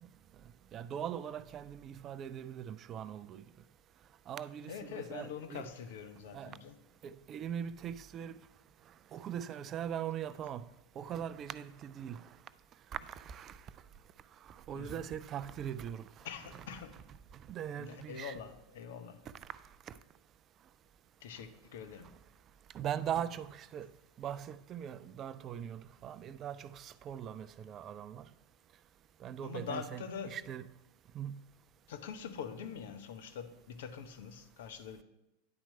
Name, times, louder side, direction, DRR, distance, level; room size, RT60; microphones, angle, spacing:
voice 1, 0.7-3.4 4.3-5.6 6.3-6.6 7.0-8.4 9.1-10.6 11.0-12.3 12.9-13.6 14.4-16.3 17.5-18.4 19.9-20.0 22.7-23.9 24.2-28.3 29.2-30.6 31.1-31.4, right 9 dB, 35° right, 0.3 m, -41 dB
voice 2, 4.6-6.8 14.7-15.0 16.2-17.0 17.8-19.3 21.2-22.1 29.4-30.4 31.9-35.0, left 7 dB, 65° left, 0.7 m, -44 dB
9.7 x 4.4 x 5.5 m
figure-of-eight pair, 85°, 0 cm